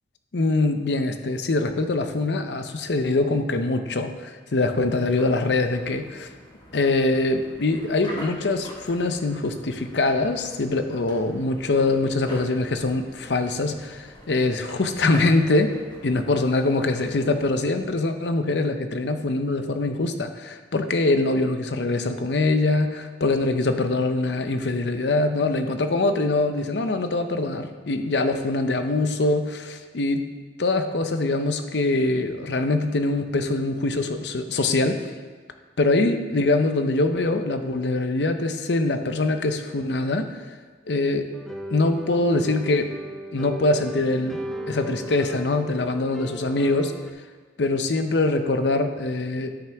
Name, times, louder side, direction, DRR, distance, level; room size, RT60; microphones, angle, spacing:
voice 1, 0.3-6.3 6.7-15.7 16.0-30.2 30.6-35.1 35.8-40.3 40.9-41.3 41.7-42.9 43.3-44.4 44.7-46.9 47.6-49.5, left 2 dB, 70° left, 8 dB, 0.7 m, -23 dB
sound 1, 4.8-17.6, equal, 25° left, 1.3 m, -44 dB
sound 2, 41.3-47.1, right 1 dB, ahead, 0.5 m, -36 dB
12.5 x 5.8 x 3.5 m, 1.4 s
head